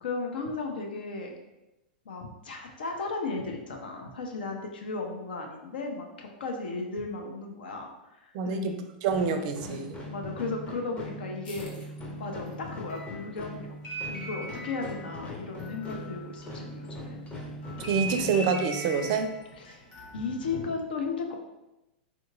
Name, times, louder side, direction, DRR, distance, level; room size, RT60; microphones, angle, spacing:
voice 1, 0.0-1.3 2.1-7.9 8.2-8.7 10.1-11.9 12.2-13.7 14.0-17.5 19.5-19.8 20.1-21.4, left 3 dB, 80° left, 2 dB, 0.6 m, -35 dB
voice 2, 8.3-10.0 17.9-19.3, right 5 dB, 50° right, 7 dB, 0.4 m, -27 dB
sound 1, 9.1-19.2, left 1 dB, 20° left, 0.7 m, -41 dB
sound 2, 11.4-17.0 17.3-20.6, right 2 dB, 45° left, 1.1 m, -41 dB
3.6 x 2.9 x 2.3 m, 0.96 s
hypercardioid pair, 110°, 5 cm